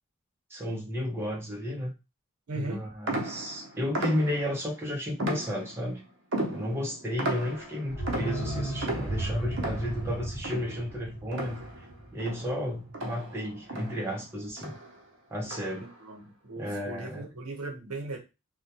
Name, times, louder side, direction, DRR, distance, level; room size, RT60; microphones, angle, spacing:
voice 1, 0.5-1.9 2.5-6.0 6.5-11.6 12.1-14.7 15.3-15.9 16.6-17.3, equal, 10° right, -2 dB, 0.5 m, -33 dB
voice 2, 2.5-2.9 15.8-18.2, right 2 dB, 90° right, 2 dB, 0.8 m, -38 dB
sound 1, 3.1-4.7 5.2-5.9 6.3-11.9 12.2-14.2 14.6-15.0 15.5-15.9, right 1 dB, 55° right, 0.6 m, -35 dB
sound 2, 7.9-12.6 12.9-13.0, right 1 dB, 50° left, 0.9 m, -35 dB
2.2 x 2.1 x 2.8 m, 0.26 s
head